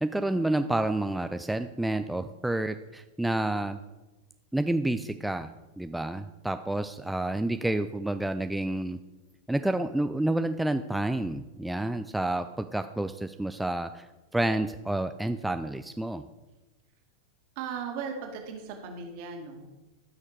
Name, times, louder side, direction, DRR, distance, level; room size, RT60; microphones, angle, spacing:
voice 1, 0.0-3.8 4.5-5.5 5.8-9.0 9.5-14.1 14.3-16.2, right 1 dB, 5° right, 8 dB, 0.4 m, -29 dB
voice 2, 17.6-19.7, right 6 dB, 45° right, 3 dB, 2.1 m, -37 dB
15.0 x 6.5 x 4.8 m, 1.1 s
figure-of-eight pair, 90°, 0 cm